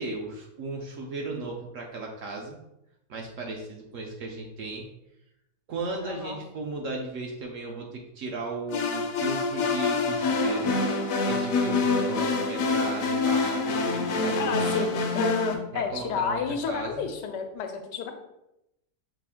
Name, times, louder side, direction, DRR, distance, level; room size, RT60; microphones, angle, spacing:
voice 1, 0.0-2.6 3.1-4.9 5.7-10.7 11.2-15.0 15.7-17.1, right 3 dB, 65° right, 1 dB, 0.8 m, -36 dB
voice 2, 6.0-6.4 14.4-18.1, left 6 dB, 90° left, 6 dB, 1.2 m, -30 dB
sound 1, 8.7-15.5, left 3 dB, 65° left, 0.9 m, -26 dB
5.9 x 2.5 x 3.5 m, 0.86 s
omnidirectional pair, 1.8 m